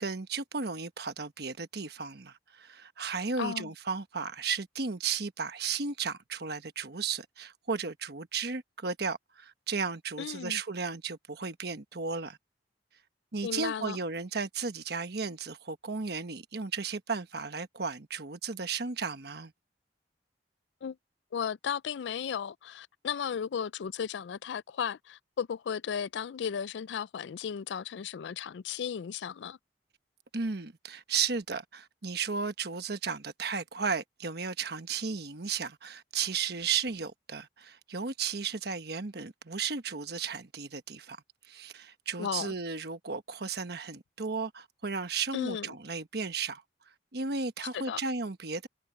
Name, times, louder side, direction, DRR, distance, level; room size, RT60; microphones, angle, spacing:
voice 1, 0.0-12.4 13.3-19.5 30.3-41.2 41.4-46.6 47.1-48.7, right 5 dB, 65° right, 1.2 m, -34 dB
voice 2, 3.4-3.7 10.2-10.6 13.4-14.0 20.8-21.0 21.3-29.6 42.2-42.5 45.3-45.7 47.7-48.0, left 7 dB, 80° left, 0.4 m, -35 dB
head